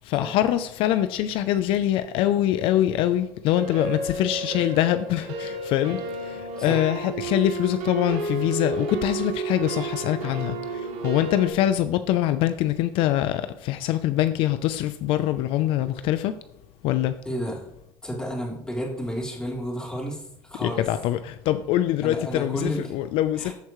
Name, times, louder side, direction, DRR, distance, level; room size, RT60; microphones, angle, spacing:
voice 1, 0.1-16.3 16.8-17.1 20.6-23.5, left 12 dB, 65° left, 0.5 m, -24 dB
sound 1, 3.6-11.5, right 3 dB, 75° right, 1.6 m, -31 dB
voice 2, 17.2-17.6 18.0-20.9 22.0-22.9 23.4-23.5, equal, 10° left, 3.2 m, -31 dB
14.0 x 4.7 x 3.1 m
supercardioid pair, 100°, 10 cm